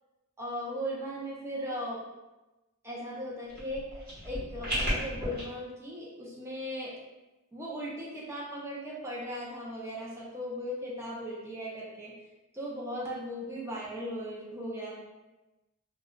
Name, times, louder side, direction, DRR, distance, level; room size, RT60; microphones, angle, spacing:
voice 1, 0.4-2.0 2.8-6.9 7.5-12.1 12.5-14.9, equal, 10° right, -5 dB, 0.5 m, -37 dB
sound 1, 3.5-5.4, equal, 40° right, 1.0 m, -34 dB
2.2 x 2.1 x 3.7 m, 1.1 s
head